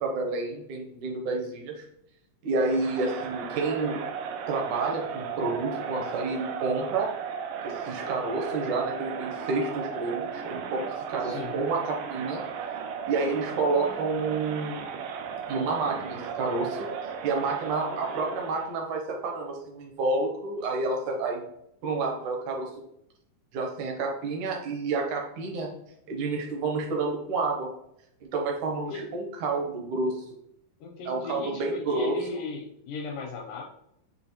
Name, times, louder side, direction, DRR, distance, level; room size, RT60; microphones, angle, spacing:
voice 1, 0.0-1.8 2.4-4.0 4.5-7.1 7.6-10.8 11.1-12.4 13.1-14.8 15.5-16.9 17.2-21.4 21.8-22.7 23.5-25.7 26.1-27.7 28.3-30.2 31.1-32.2, right 3 dB, 75° right, 1 dB, 1.9 m, -29 dB
Crowd, 2.6-18.8, right 7 dB, 90° right, 1.8 m, -35 dB
voice 2, 11.2-11.6 28.9-29.0 30.8-33.6, left 4 dB, 80° left, 1 dB, 2.0 m, -37 dB
6.2 x 2.8 x 2.8 m, 0.75 s
omnidirectional pair, 4.2 m